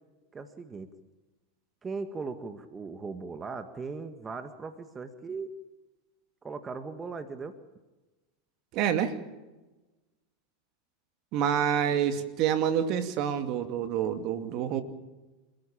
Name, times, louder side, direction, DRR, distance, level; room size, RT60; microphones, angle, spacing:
voice 1, 0.3-0.9 1.8-5.5 6.4-7.5 11.9-12.2, right 4 dB, 20° right, 9 dB, 1.8 m, -38 dB
voice 2, 8.7-9.1 11.3-14.8, right 9 dB, 50° right, 8 dB, 2.5 m, -27 dB
28.0 x 15.0 x 8.9 m, 1.1 s
hypercardioid pair, 95°, 0 cm